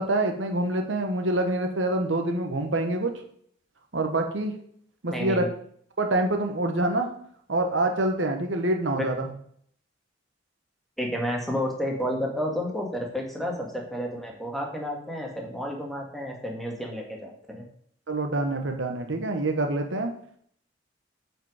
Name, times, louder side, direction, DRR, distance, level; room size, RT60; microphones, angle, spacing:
voice 1, 0.0-3.1 3.9-4.5 5.0-5.4 6.0-7.1 7.5-9.3 18.1-20.1, right 2 dB, 75° right, 5 dB, 1.2 m, -26 dB
voice 2, 5.1-5.5 9.0-9.1 11.0-17.6, equal, ahead, 0 dB, 1.7 m, -31 dB
8.9 x 5.0 x 4.9 m, 0.63 s
head